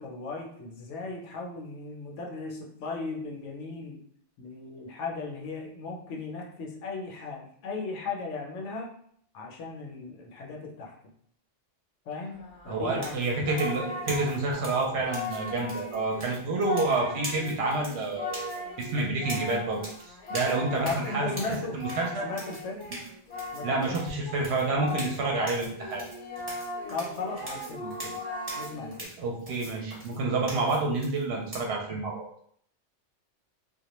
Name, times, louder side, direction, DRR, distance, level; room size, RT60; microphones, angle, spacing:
voice 1, 0.0-4.0 4.4-8.9 9.3-10.9 12.1-13.3 20.8-21.8 22.2-22.9 23.5-24.0 26.9-28.2 28.5-29.1, left 3 dB, 75° left, 0 dB, 0.9 m, -37 dB
Singing, 12.4-25.5 25.8-29.0, left 2 dB, 50° left, 0.7 m, -39 dB
voice 2, 12.7-18.5 18.8-21.3 21.7-22.3 23.6-26.0 29.2-32.2, right 3 dB, 65° right, 0 dB, 0.8 m, -28 dB
sound 1, 12.9-31.6, right 1 dB, 35° right, 0.8 m, -43 dB
2.2 x 2.1 x 2.9 m, 0.64 s
omnidirectional pair, 1.2 m